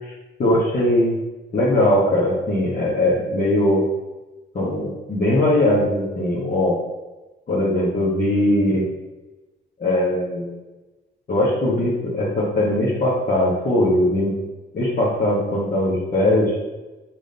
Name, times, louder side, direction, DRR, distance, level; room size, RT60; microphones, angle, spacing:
voice 1, 0.4-1.1 1.5-3.8 4.5-6.8 7.5-8.8 9.8-10.6 11.3-14.3 14.7-16.6, left 1 dB, 45° left, -7 dB, 1.8 m, -20 dB
5.1 x 3.9 x 5.3 m, 1.1 s
cardioid pair, 90°, 20 cm